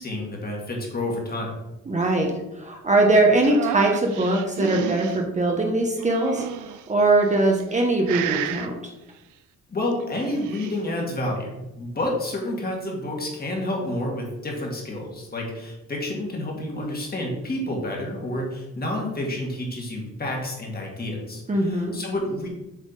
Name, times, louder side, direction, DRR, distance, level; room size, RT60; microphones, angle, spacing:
voice 1, 0.0-1.6 9.7-22.5, left 1 dB, 30° left, -1 dB, 1.9 m, -29 dB
voice 2, 1.9-2.3 2.6-8.7 21.5-22.0, right 2 dB, 25° right, 1 dB, 0.9 m, -21 dB
sound 1, 3.4-5.2 6.0-6.8 7.5-7.8 8.1-8.7 10.0-10.8, right 11 dB, 85° right, 0.5 m, -31 dB
7.5 x 3.3 x 4.1 m, 0.95 s
cardioid pair, 90°, 30 cm